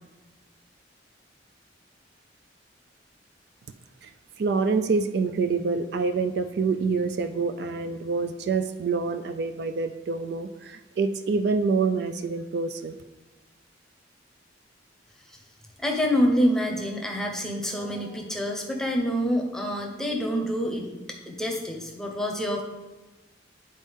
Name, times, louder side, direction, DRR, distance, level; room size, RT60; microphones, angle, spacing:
voice 1, 4.4-12.9, right 4 dB, 60° right, 9 dB, 0.3 m, -26 dB
voice 2, 15.8-22.6, equal, 5° left, 0 dB, 0.8 m, -27 dB
9.7 x 4.1 x 3.6 m, 1.1 s
head